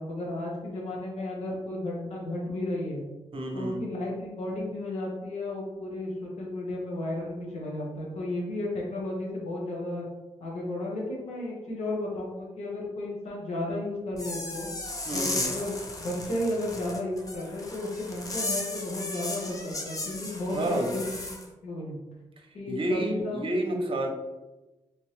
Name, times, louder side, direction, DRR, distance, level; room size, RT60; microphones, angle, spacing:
voice 1, 0.0-3.0 3.5-10.1 10.4-14.7 15.1-21.3 21.6-22.0 22.5-23.5, left 1 dB, 80° left, -3 dB, 1.3 m, -33 dB
voice 2, 3.3-3.9 15.0-15.5 20.5-20.9 22.4-24.1, right 1 dB, 55° right, 3 dB, 0.8 m, -30 dB
sound 1, 14.1-21.4, left 2 dB, 30° left, 0.8 m, -35 dB
3.5 x 3.0 x 3.3 m, 1.1 s
cardioid pair, 55°, 11 cm